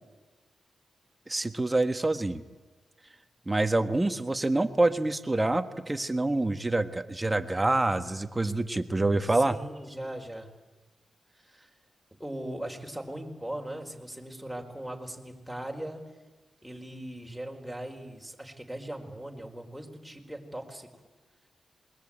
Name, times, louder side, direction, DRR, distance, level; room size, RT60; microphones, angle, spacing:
voice 1, 1.3-2.4 3.4-9.6, right 2 dB, 20° right, 9 dB, 1.5 m, -26 dB
voice 2, 9.3-10.5 11.3-11.7 12.2-16.0 16.6-20.9, right 1 dB, ahead, 1 dB, 4.5 m, -39 dB
27.0 x 21.5 x 8.8 m, 1.2 s
cardioid pair, 80°, 0 cm